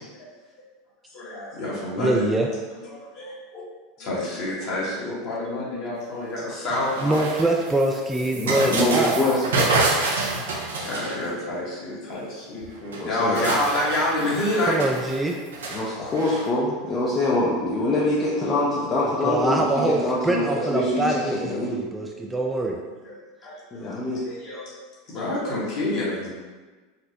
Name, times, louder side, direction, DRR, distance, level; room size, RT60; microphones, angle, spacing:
voice 1, 1.1-2.3 2.8-3.6 4.0-7.2 10.8-14.8 23.0-23.2 23.4-23.6 24.1-24.7 25.1-26.3, left 1 dB, 50° left, -6 dB, 1.3 m, -28 dB
voice 2, 2.0-2.5 7.0-9.2 14.7-15.4 19.2-22.8, right 2 dB, 10° right, 0 dB, 0.3 m, -24 dB
sound 1, 6.7-11.5 12.6-12.7 12.9-16.5, right 3 dB, 80° right, 0.5 m, -28 dB
voice 3, 8.3-9.9 13.0-13.4 15.7-21.8 23.7-24.2, left 1 dB, 30° left, -6 dB, 0.6 m, -25 dB
4.2 x 2.1 x 2.8 m, 1.3 s
hypercardioid pair, 85°, 0 cm